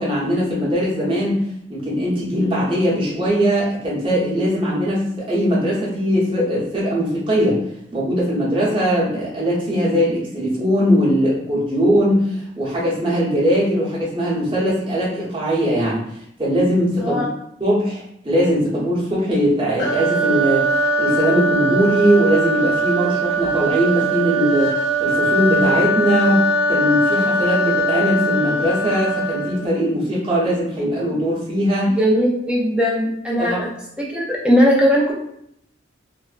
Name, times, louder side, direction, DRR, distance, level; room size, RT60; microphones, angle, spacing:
voice 1, 0.0-1.4 1.7-7.6 7.9-16.0 16.4-17.2 17.6-31.9 33.4-33.6, equal, 25° right, -7 dB, 0.8 m, -20 dB
voice 2, 17.0-17.3 32.0-33.6 34.0-35.1, equal, 5° right, -3 dB, 0.4 m, -18 dB
sound 1, 19.8-29.7, right 2 dB, 75° left, 0.5 m, -20 dB
3.1 x 2.0 x 2.4 m, 0.73 s
head